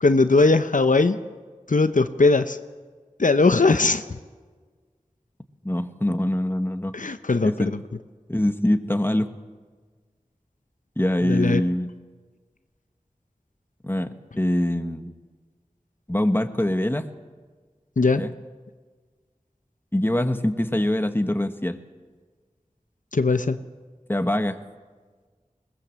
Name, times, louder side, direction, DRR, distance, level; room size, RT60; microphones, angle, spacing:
voice 1, 0.0-1.2 1.7-2.6 3.2-4.0 6.9-7.7 11.2-11.6 18.0-18.2 23.1-23.6, left 3 dB, 70° left, 10 dB, 0.8 m, -19 dB
voice 2, 5.6-6.9 7.4-7.7 8.3-9.3 11.0-11.9 13.8-15.1 16.1-17.1 18.2-18.3 19.9-21.8 24.1-24.6, left 1 dB, 15° left, 8 dB, 1.4 m, -24 dB
21.5 x 19.0 x 7.5 m, 1.4 s
wide cardioid pair, 40°, 14 cm